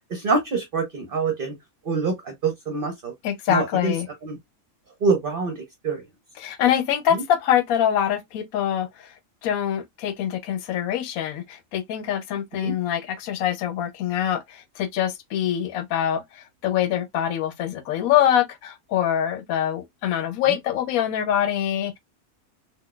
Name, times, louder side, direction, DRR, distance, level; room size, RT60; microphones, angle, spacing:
voice 1, 0.1-1.6 1.8-3.1 3.5-3.9 4.2-4.4 5.0-6.0 7.1-7.2 12.6-12.7 20.5-20.6, right 4 dB, 50° right, 0.8 m, -25 dB
voice 2, 3.2-4.1 6.4-9.1 9.4-22.0, left 10 dB, 90° left, 1.0 m, -24 dB
3.8 x 2.5 x 2.3 m
omnidirectional pair, 1.4 m